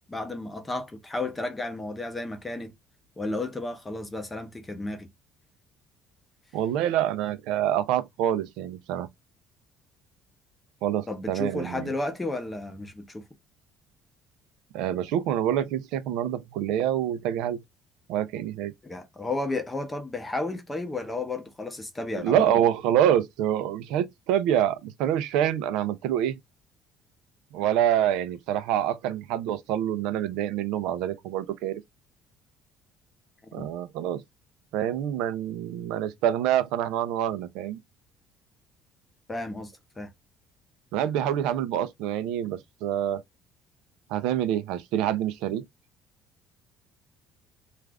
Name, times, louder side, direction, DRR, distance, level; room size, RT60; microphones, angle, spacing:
voice 1, 0.1-2.7 3.2-5.1 11.1-13.2 18.8-22.6 33.5-33.7 39.3-40.1, left 2 dB, 10° left, 0.5 m, -33 dB
voice 2, 6.5-9.1 10.8-11.9 14.7-17.6 18.1-18.7 22.1-26.4 27.5-31.8 33.5-34.2 34.7-37.8 40.9-43.2 44.1-45.6, right 10 dB, 80° right, 0.4 m, -26 dB
2.4 x 2.4 x 3.2 m
cardioid pair, 180°, 0 cm